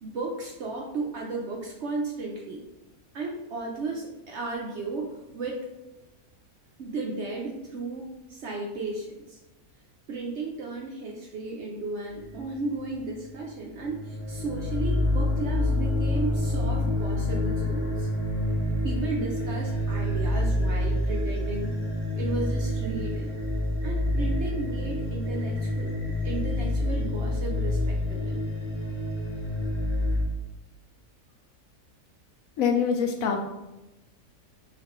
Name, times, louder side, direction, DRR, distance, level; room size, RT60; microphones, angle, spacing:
voice 1, 0.0-2.6 3.1-5.6 6.8-9.4 10.1-18.1 18.8-21.8 22.1-23.4 23.8-25.9 26.2-28.4, right 3 dB, 65° right, 0 dB, 0.7 m, -34 dB
sound 1, 12.1-13.5 13.7-30.2, left 1 dB, 20° left, 0.9 m, -28 dB
voice 2, 32.6-33.5, left 6 dB, 70° left, 3 dB, 0.9 m, -24 dB
5.8 x 2.5 x 3.0 m, 1.0 s
omnidirectional pair, 1.6 m